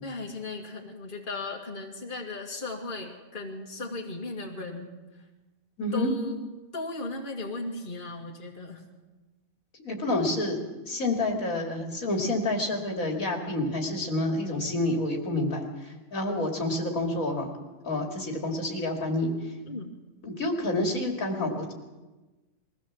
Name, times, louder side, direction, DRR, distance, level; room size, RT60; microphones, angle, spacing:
voice 1, 0.0-4.9 5.9-6.5 6.7-8.8 19.7-19.9, left 2 dB, 35° left, 0 dB, 2.3 m, -36 dB
voice 2, 5.8-6.1 9.8-10.6 10.9-17.6 17.8-19.3 20.2-21.7, left 2 dB, 75° left, 2 dB, 2.9 m, -28 dB
22.5 x 16.0 x 7.3 m, 1.2 s
omnidirectional pair, 1.5 m